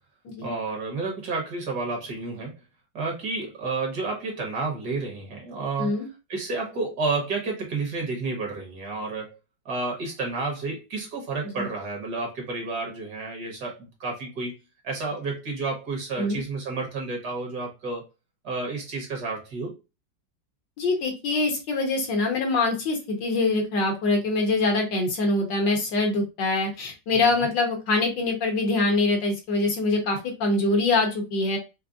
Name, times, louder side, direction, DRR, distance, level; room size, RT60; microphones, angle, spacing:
voice 1, 0.4-2.5 2.9-6.0 6.3-9.4 9.6-14.6 14.8-18.1 18.4-19.8 27.1-27.5, right 3 dB, 60° right, 1.6 m, -31 dB
voice 2, 20.8-31.6, left 2 dB, 70° left, 1.5 m, -24 dB
5.0 x 2.1 x 2.4 m
omnidirectional pair, 2.1 m